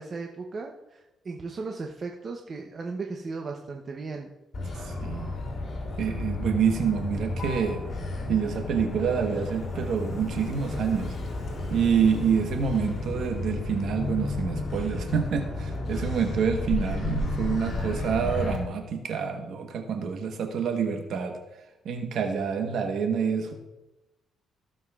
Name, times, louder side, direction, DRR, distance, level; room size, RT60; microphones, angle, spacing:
voice 1, 0.0-4.3, right 4 dB, 40° right, 2 dB, 0.8 m, -36 dB
Motor vehicle (road), 4.5-18.6, left 2 dB, 40° left, 2.9 m, -32 dB
voice 2, 4.8-5.3 6.0-7.8 8.3-11.2 11.7-21.4 21.8-23.5, right 6 dB, 70° right, 4 dB, 1.1 m, -27 dB
15.5 x 7.1 x 2.4 m, 0.98 s
cardioid pair, 90°, 0 cm